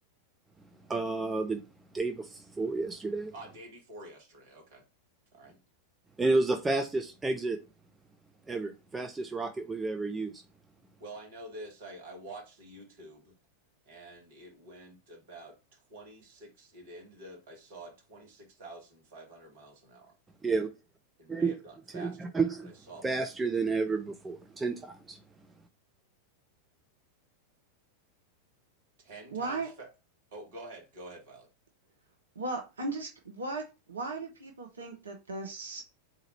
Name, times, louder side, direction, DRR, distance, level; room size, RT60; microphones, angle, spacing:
voice 1, 0.9-1.6 1.9-3.3 6.2-7.6 8.5-10.3 20.4-20.7 21.3-21.5 21.9-22.7 23.0-25.2, right 3 dB, 10° right, 0.5 m, -30 dB
voice 2, 3.3-4.8 5.3-5.6 11.0-13.3 13.9-20.1 21.2-23.3 29.0-29.9 30.3-31.5, right 2 dB, 55° right, 1.6 m, -48 dB
voice 3, 29.3-29.7 32.4-33.6 33.9-35.8, right 3 dB, 70° right, 0.7 m, -36 dB
3.8 x 2.8 x 4.4 m
figure-of-eight pair, 90°, 0 cm